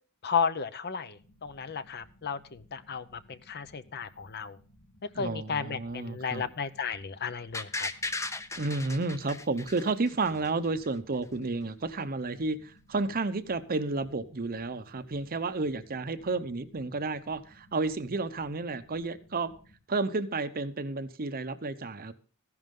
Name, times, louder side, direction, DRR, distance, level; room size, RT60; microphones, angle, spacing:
voice 1, 0.2-4.6 5.1-7.9, left 6 dB, 50° left, 0.7 m, -33 dB
sound 1, 1.1-19.8, left 1 dB, 85° left, 3.9 m, -60 dB
voice 2, 5.2-6.5 8.6-19.5 19.9-22.1, right 3 dB, 40° right, 0.8 m, -31 dB
sound 2, 7.5-10.5 10.8-10.9, left 2 dB, 15° left, 0.6 m, -36 dB
14.5 x 10.5 x 3.7 m
head